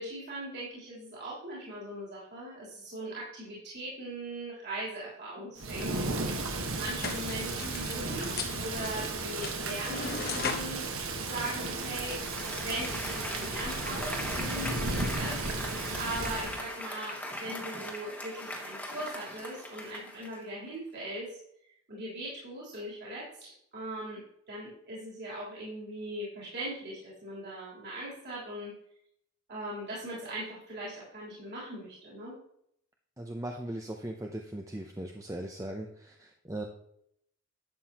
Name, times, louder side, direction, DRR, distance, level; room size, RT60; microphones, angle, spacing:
voice 1, 0.0-6.0 6.7-10.9 11.2-15.7 16.0-21.3 21.9-24.2 24.5-28.7 29.5-32.3, right 1 dB, 50° right, -7 dB, 3.4 m, -40 dB
Thunder / Rain, 5.6-16.7, right 3 dB, 75° right, 1.4 m, -34 dB
sound 1, 6.9-12.2, left 5 dB, 45° left, 1.0 m, -39 dB
Applause, 11.6-20.5, left 1 dB, 5° left, 1.3 m, -40 dB
voice 2, 33.2-36.7, right 1 dB, 15° right, 2 dB, 0.6 m, -39 dB
11.5 x 7.7 x 2.9 m, 0.71 s
head